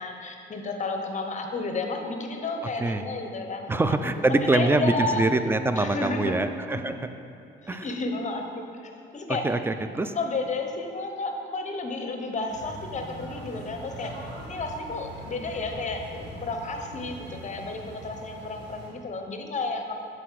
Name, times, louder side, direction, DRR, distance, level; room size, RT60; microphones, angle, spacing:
voice 1, 0.0-5.3 5.8-6.3 6.7-7.0 7.7-8.4 8.7-9.5 10.1-14.1 14.4-20.0, left 3 dB, 35° left, 4 dB, 0.8 m, -32 dB
voice 2, 3.7-7.0 7.7-7.9 9.4-10.1, right 2 dB, 10° right, 9 dB, 0.3 m, -24 dB
sound 1, 12.5-18.9, right 1 dB, 60° right, 1.5 m, -42 dB
7.7 x 4.0 x 4.6 m, 2.7 s
cardioid pair, 90°, 20 cm